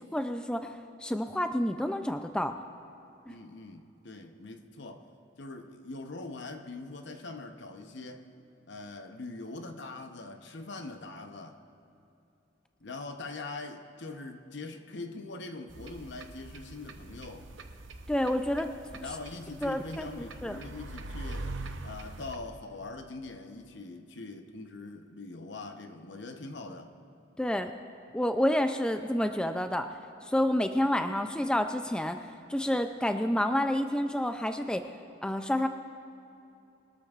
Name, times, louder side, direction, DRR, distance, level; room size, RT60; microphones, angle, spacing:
voice 1, 0.1-0.7 1.0-2.5 3.3-3.4 18.1-18.7 19.6-20.6 27.4-27.7 28.1-29.9 30.2-34.9 35.2-35.7, left 1 dB, 5° left, 0.3 m, -29 dB
voice 2, 3.3-5.1 5.4-8.3 8.7-11.6 12.8-17.5 19.0-21.5 21.8-26.9, left 3 dB, 65° left, 0.8 m, -42 dB
sound 1, 15.7-22.4, right 2 dB, 80° right, 0.8 m, -43 dB
22.0 x 13.0 x 2.4 m
head